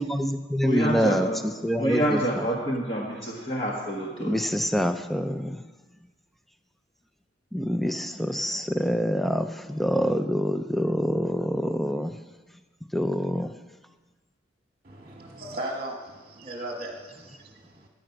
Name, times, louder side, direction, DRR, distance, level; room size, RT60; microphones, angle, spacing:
voice 1, 0.0-2.4 4.2-5.6 7.5-12.1 12.9-13.5, equal, ahead, 8 dB, 0.4 m, -26 dB
voice 2, 0.6-1.4 1.8-4.3, right 1 dB, 30° left, -3 dB, 1.5 m, -27 dB
voice 3, 14.8-17.9, right 1 dB, 35° right, 1 dB, 1.4 m, -37 dB
15.0 x 10.0 x 5.8 m, 1.3 s
head